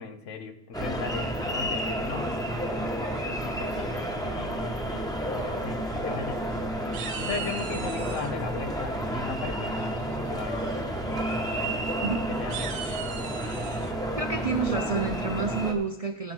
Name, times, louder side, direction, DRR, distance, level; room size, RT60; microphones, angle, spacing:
voice 1, 0.0-2.4 3.4-6.4 7.2-10.6 11.5-11.8 12.3-12.7, left 6 dB, 70° left, 8 dB, 1.1 m, -37 dB
sound 1, 0.7-15.7, right 1 dB, 5° left, 1.0 m, -31 dB
sound 2, 6.0-6.6 6.9-8.3 9.8-10.2 10.6-10.8 11.1-11.2 11.6-11.7 12.3-13.9, right 8 dB, 70° right, 1.1 m, -39 dB
voice 2, 14.2-16.3, right 4 dB, 40° right, 4 dB, 0.6 m, -29 dB
16.5 x 5.5 x 4.5 m, 0.83 s
omnidirectional pair, 1.4 m